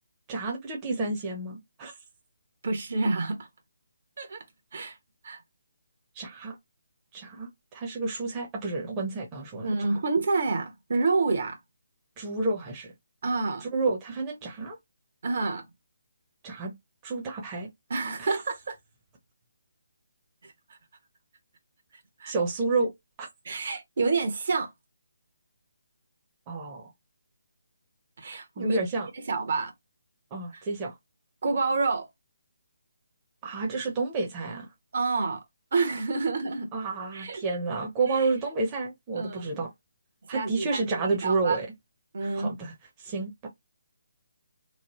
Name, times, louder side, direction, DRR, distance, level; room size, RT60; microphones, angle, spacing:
voice 1, 0.3-2.0 6.1-6.6 7.1-10.0 12.2-12.9 13.6-14.8 16.4-16.7 17.0-17.7 18.2-18.4 22.3-22.9 23.2-23.3 26.5-26.9 28.6-29.1 30.3-31.0 33.4-34.7 36.7-39.7 40.3-41.7 42.2-43.5, right 3 dB, 20° right, 0.7 m, -30 dB
voice 2, 2.6-3.5 4.2-4.4 4.7-5.0 5.2-5.4 9.6-11.6 13.2-13.7 15.2-15.6 17.9-18.8 22.2-22.3 23.4-24.7 28.2-28.8 29.3-29.7 31.4-32.1 34.9-35.4 35.7-36.7 37.1-37.4 38.1-38.3 39.1-39.5 40.3-41.6 42.1-42.5, right 3 dB, 55° right, 1.0 m, -28 dB
3.0 x 2.0 x 3.0 m
figure-of-eight pair, 150°, 0 cm